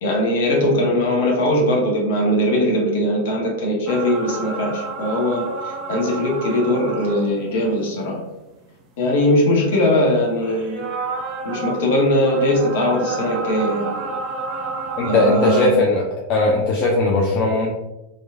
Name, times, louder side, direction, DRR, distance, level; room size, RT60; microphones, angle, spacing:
voice 1, 0.0-5.4 5.9-8.2 9.0-10.9 11.4-14.1 15.0-15.8, left 1 dB, 55° left, -1 dB, 0.7 m, -20 dB
sound 1, 3.9-7.9 8.4-8.5 10.4-15.7, right 3 dB, 35° right, 0.4 m, -30 dB
voice 2, 15.0-16.0 16.3-17.7, left 3 dB, 40° left, -2 dB, 0.4 m, -18 dB
2.9 x 2.0 x 2.4 m, 0.97 s
figure-of-eight pair, 90°, 0 cm